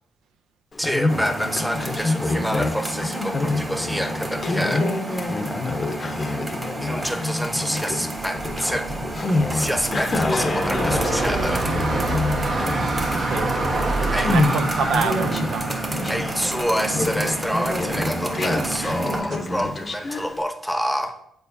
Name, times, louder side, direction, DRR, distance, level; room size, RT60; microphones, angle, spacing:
Conversation, 0.7-20.4, left 2 dB, 40° left, 0.7 m, -27 dB
voice 1, 0.8-5.3 6.8-8.9 9.5-11.7 14.1-14.4 16.1-21.2, equal, ahead, 0.9 m, -27 dB
sound 1, 1.1-19.2, right 3 dB, 25° right, 1.2 m, -32 dB
sound 2, 8.2-19.7, right 2 dB, 60° right, 1.2 m, -28 dB
voice 2, 13.1-13.5 14.0-15.8, right 6 dB, 75° right, 0.4 m, -27 dB
7.8 x 4.7 x 2.6 m
supercardioid pair, 55°, 0 cm